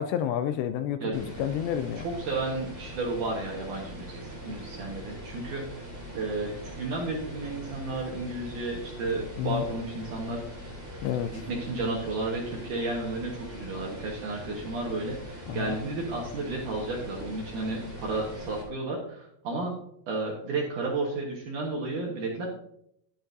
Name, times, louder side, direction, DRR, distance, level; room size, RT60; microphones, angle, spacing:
voice 1, 0.0-2.0 9.4-9.6 11.0-11.4 15.5-15.7, left 10 dB, 85° left, 10 dB, 2.5 m, -30 dB
sound 1, 1.1-18.6, equal, 5° right, 2.1 m, -42 dB
voice 2, 2.0-5.8 6.2-10.4 11.3-19.7 20.1-22.5, right 2 dB, 65° right, -1 dB, 2.1 m, -32 dB
11.5 x 10.5 x 2.6 m, 0.72 s
omnidirectional pair, 5.2 m